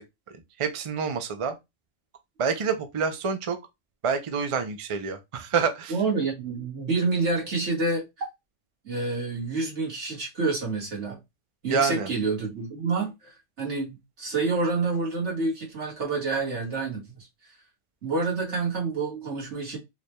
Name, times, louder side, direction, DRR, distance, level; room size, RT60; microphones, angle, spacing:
voice 1, 0.3-1.6 2.4-3.6 4.0-5.9 11.7-12.1, right 5 dB, 50° right, 0.4 m, -27 dB
voice 2, 5.9-8.0 8.8-11.2 11.6-17.3 18.0-19.8, right 3 dB, 65° right, 2.0 m, -28 dB
4.7 x 3.2 x 2.2 m
omnidirectional pair, 1.3 m